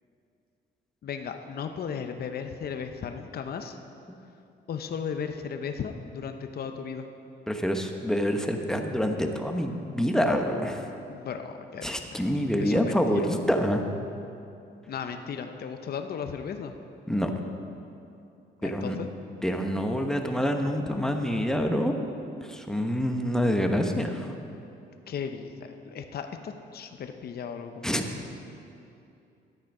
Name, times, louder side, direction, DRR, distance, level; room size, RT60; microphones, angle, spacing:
voice 1, 1.0-3.8 4.7-7.1 11.1-12.2 12.6-13.3 14.9-16.7 18.6-19.1 25.1-25.5 25.8-27.8, left 6 dB, 50° left, 6 dB, 0.7 m, -35 dB
voice 2, 7.5-10.9 11.8-13.8 17.1-17.3 18.6-19.0 19.4-21.9 22.4-24.4 27.8-28.1, equal, 5° left, 4 dB, 1.1 m, -26 dB
12.5 x 8.4 x 5.4 m, 2.7 s
cardioid pair, 90°, 20 cm